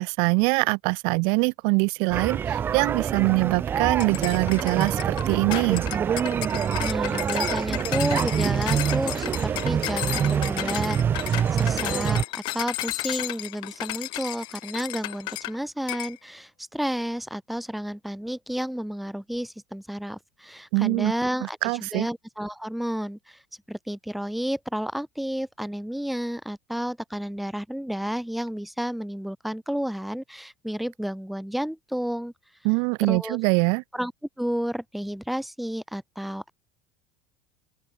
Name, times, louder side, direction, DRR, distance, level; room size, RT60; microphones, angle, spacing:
voice 1, 0.0-5.8 20.7-21.1 21.6-22.1 32.6-33.8, right 38 dB, 55° right, 2.0 m, -23 dB
sound 1, 2.1-12.2, right 8 dB, 20° right, 1.0 m, -26 dB
sound 2, 4.0-15.6 15.9-16.1, left 21 dB, 45° left, 6.6 m, -33 dB
voice 2, 6.8-23.4 23.7-32.3 33.1-33.4 33.9-34.1 34.4-36.5, equal, ahead, 3.8 m, -31 dB
open air
cardioid pair, 175°, 11 cm